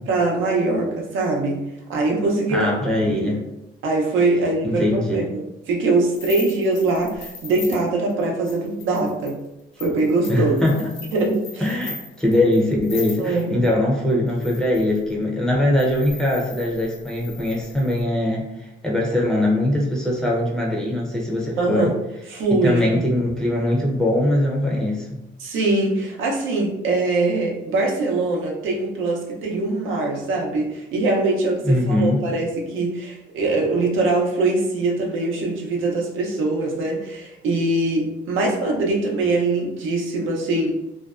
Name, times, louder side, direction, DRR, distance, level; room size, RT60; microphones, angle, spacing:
voice 1, 0.1-1.6 1.9-2.7 3.1-3.3 3.8-9.4 9.8-10.6 11.1-11.7 13.2-13.6 21.6-21.9 22.3-23.0 25.4-40.7, right 2 dB, 80° right, -1 dB, 0.6 m, -22 dB
voice 2, 2.5-3.4 4.6-5.3 10.3-10.9 11.6-21.9 22.5-25.1 31.7-32.2, left 1 dB, 5° left, -3 dB, 0.5 m, -21 dB
sound 1, 6.1-13.7 14.3-15.1 15.8-18.0, left 4 dB, 85° left, 0.7 m, -39 dB
2.5 x 2.2 x 2.3 m, 0.91 s
cardioid pair, 90°, 20 cm